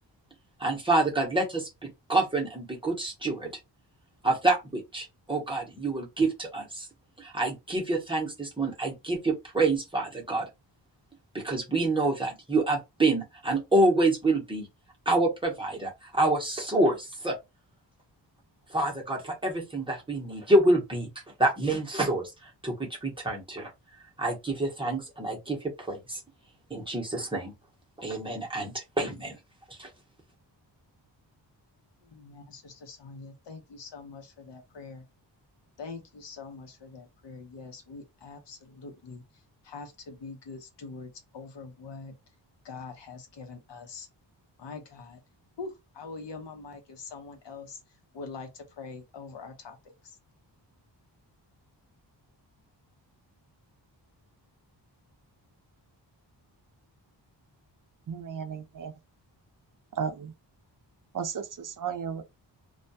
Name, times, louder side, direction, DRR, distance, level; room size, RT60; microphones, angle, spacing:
voice 1, 0.6-3.5 4.2-6.9 7.2-10.5 11.3-14.7 15.1-17.3 18.7-21.1 21.4-23.7 24.2-26.2 26.7-27.5 28.0-29.4 29.7-29.9, right 2 dB, 10° right, 0.8 m, -27 dB
voice 2, 32.0-35.1 35.8-39.2 39.6-42.1 42.6-44.1 44.6-45.2 45.6-47.8 48.1-49.8 50.0-50.2, left 4 dB, 70° left, 0.8 m, -43 dB
voice 3, 58.1-58.9 59.9-60.3 61.1-62.2, right 7 dB, 50° right, 0.4 m, -34 dB
2.3 x 2.2 x 2.6 m
wide cardioid pair, 130°, 44 cm